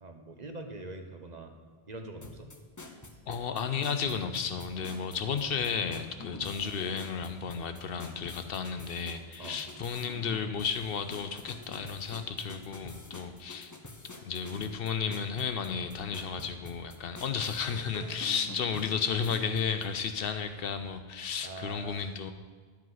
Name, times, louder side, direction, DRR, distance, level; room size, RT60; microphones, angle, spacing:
voice 1, 0.0-1.5 1.9-2.5 6.2-6.4 9.4-9.6 21.4-22.0, right 2 dB, 45° right, 4 dB, 1.0 m, -43 dB
sound 1, 2.2-19.9, left 2 dB, 20° left, 0.7 m, -47 dB
voice 2, 3.3-13.7 14.2-22.3, left 6 dB, 70° left, 9 dB, 0.8 m, -33 dB
11.5 x 7.4 x 4.0 m, 1.5 s
omnidirectional pair, 1.0 m